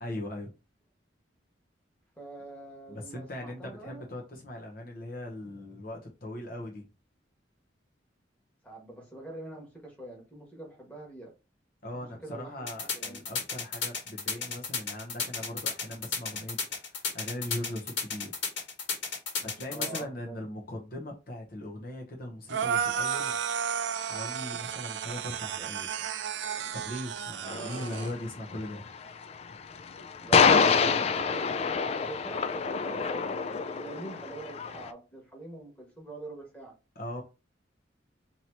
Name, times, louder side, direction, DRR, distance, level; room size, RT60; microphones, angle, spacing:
voice 1, 0.0-0.5 2.9-6.8 11.8-18.3 19.4-23.3 24.0-25.9 26.7-28.9 37.0-37.2, left 1 dB, 50° left, 0.8 m, -39 dB
voice 2, 2.2-4.0 8.6-11.3 11.9-12.6 12.9-13.3 19.7-20.4 27.4-27.8 30.2-33.4 33.7-36.8, right 2 dB, 10° left, 1.3 m, -44 dB
sound 1, 12.7-20.0, left 5 dB, 90° left, 1.7 m, -33 dB
sound 2, 22.5-28.1, right 7 dB, 75° right, 0.4 m, -33 dB
sound 3, 27.5-34.9, left 5 dB, 35° left, 0.3 m, -27 dB
2.9 x 2.9 x 4.4 m
head